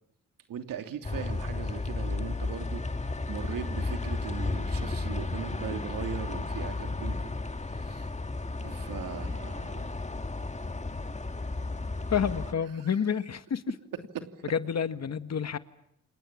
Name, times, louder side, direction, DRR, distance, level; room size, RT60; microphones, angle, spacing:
voice 1, 0.5-7.3 7.7-8.1 8.6-10.0 12.3-12.4 12.7-13.3 14.1-14.3, right 8 dB, 85° right, 6 dB, 2.9 m, -39 dB
sound 1, 1.0-12.5, left 3 dB, 20° left, 2.0 m, -33 dB
voice 2, 12.1-13.6 14.5-15.6, left 7 dB, 50° left, 11 dB, 1.7 m, -29 dB
29.5 x 27.0 x 7.4 m, 0.76 s
cardioid pair, 70°, 33 cm